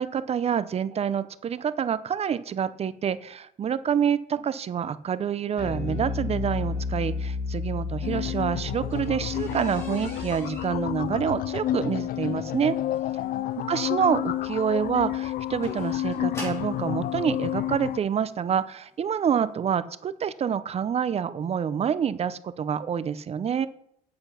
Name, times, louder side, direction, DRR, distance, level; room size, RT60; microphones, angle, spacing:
voice 1, 0.0-12.8 13.7-23.7, right 8 dB, 40° right, 15 dB, 0.6 m, -27 dB
Bass guitar, 5.6-12.0, left 4 dB, 90° left, 2.4 m, -33 dB
sound 1, 8.0-18.0, left 13 dB, 55° left, 0.4 m, -30 dB
sound 2, 8.0-16.9 17.8-17.9 18.4-18.6 18.9-19.0 19.3-19.4, equal, 15° left, 4.6 m, -44 dB
8.0 x 7.7 x 5.6 m, 0.72 s
cardioid pair, 110°, 17 cm